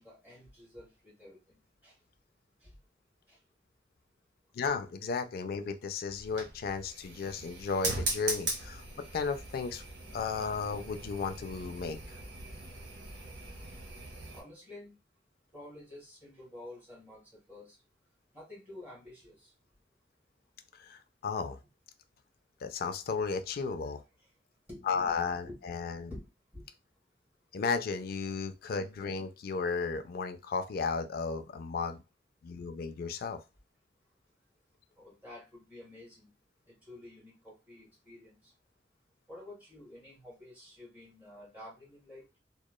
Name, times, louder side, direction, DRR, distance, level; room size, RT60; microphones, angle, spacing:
voice 1, 0.0-1.9 2.6-2.7 3.3-3.4 11.6-11.7 14.3-14.9 15.5-17.7 18.3-19.5 24.7-25.1 25.4-25.6 26.1-26.2 26.5-26.6 35.0-36.3 36.9-38.5 39.3-42.4, left 1 dB, 10° right, -6 dB, 1.6 m, -50 dB
voice 2, 4.5-8.9 9.1-9.8 10.1-12.0 20.8-21.6 22.6-24.0 24.9-26.1 27.5-32.0 32.4-33.4, left 5 dB, 55° left, 8 dB, 0.4 m, -34 dB
sound 1, 6.1-14.4, right 2 dB, 85° right, 1.0 m, -40 dB
2.9 x 2.2 x 2.2 m, 0.26 s
head